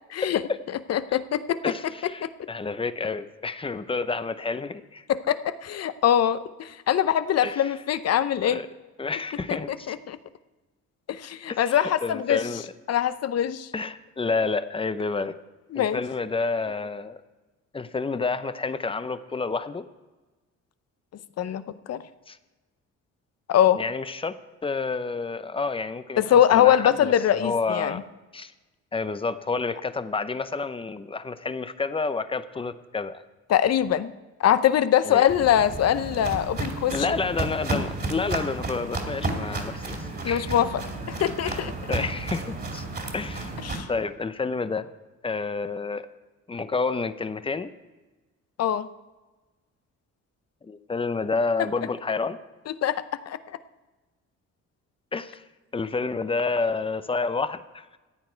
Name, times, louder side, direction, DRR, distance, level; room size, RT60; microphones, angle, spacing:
voice 1, 0.2-0.6 1.6-5.0 7.4-7.8 8.3-8.7 9.0-9.9 11.5-12.7 13.7-15.3 15.7-17.2 17.7-19.9 22.3-22.4 23.7-24.4 24.6-28.0 28.3-28.5 28.9-33.2 35.0-35.3 36.9-40.6 41.4-41.6 41.9-42.9 43.1-44.9 45.2-46.1 46.5-47.7 50.6-52.4 55.1-55.4 55.7-58.0, left 4 dB, 20° left, 12 dB, 0.6 m, -29 dB
voice 2, 0.9-1.6 2.2-2.3 5.1-8.6 9.9-10.2 11.1-12.4 12.9-13.7 15.7-16.0 21.4-21.6 21.9-22.0 23.5-23.8 26.2-28.0 33.5-34.1 34.4-36.9 40.2-40.8 41.1-41.7 43.7-43.9 48.6-48.9 52.8-53.4, left 10 dB, 55° left, 13 dB, 0.7 m, -22 dB
Walk footsteps, 35.3-43.8, right 2 dB, 30° right, 2.4 m, -32 dB
14.0 x 9.1 x 4.5 m, 1.2 s
cardioid pair, 90°, 30 cm